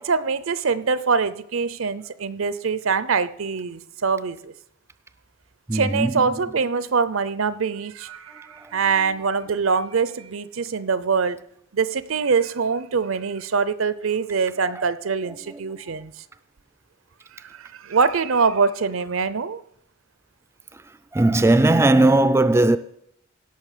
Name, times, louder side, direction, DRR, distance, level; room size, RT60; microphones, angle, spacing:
voice 1, 0.0-4.5 5.7-11.4 11.7-16.1 17.6-19.6, right 5 dB, 75° right, 0.6 m, -24 dB
voice 2, 5.7-6.4 8.6-9.1 14.6-14.8 15.5-15.8 21.1-22.8, right 2 dB, 15° right, 0.4 m, -19 dB
17.0 x 5.9 x 6.7 m
head